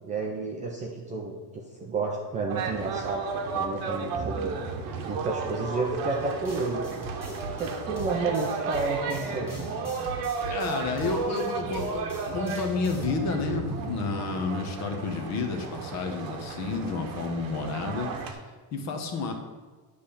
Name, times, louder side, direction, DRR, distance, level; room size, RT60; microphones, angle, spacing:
voice 1, 0.0-3.2 3.5-4.6 5.0-9.6, right 3 dB, 20° right, -1 dB, 0.4 m, -31 dB
sound 1, 2.5-18.3, right 4 dB, 45° right, 1.0 m, -33 dB
sound 2, 6.5-13.1, right 3 dB, 5° left, 2.1 m, -43 dB
voice 2, 10.4-19.3, left 4 dB, 35° left, 4 dB, 1.0 m, -31 dB
9.7 x 3.4 x 7.0 m, 1.4 s
cardioid pair, 180°, 45 cm